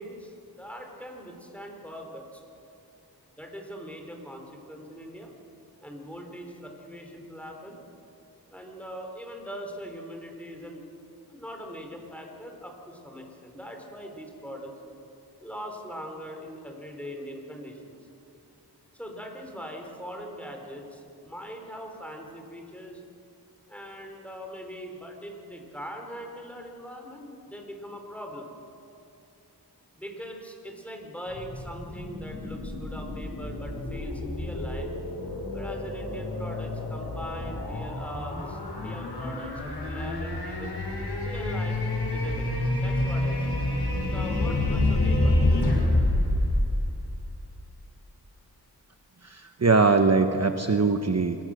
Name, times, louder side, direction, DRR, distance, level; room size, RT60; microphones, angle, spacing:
voice 1, 0.0-2.4 3.3-5.3 5.8-7.8 8.5-10.9 11.3-14.7 15.4-18.0 18.9-23.0 23.7-28.5 30.0-34.9 35.5-40.7 41.2-41.8 42.1-43.7 44.0-45.6, equal, 5° left, 2 dB, 4.4 m, -41 dB
sound 1, 31.3-47.5, left 1 dB, 85° left, 5.6 m, -28 dB
voice 2, 49.2-51.4, right 4 dB, 40° right, 7 dB, 1.0 m, -22 dB
26.5 x 21.5 x 6.6 m, 2.6 s
wide cardioid pair, 65°, 39 cm